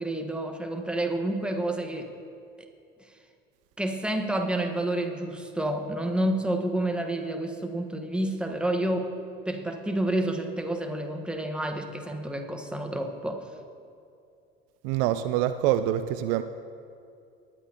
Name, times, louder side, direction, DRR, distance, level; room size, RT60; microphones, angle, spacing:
voice 1, 0.0-2.1 2.6-2.7 3.8-9.1 9.5-13.4, right 1 dB, 5° right, 3 dB, 1.3 m, -29 dB
voice 2, 14.8-16.4, right 12 dB, 65° right, 11 dB, 0.5 m, -25 dB
20.0 x 8.7 x 2.9 m, 2.5 s
hypercardioid pair, 65°, 30 cm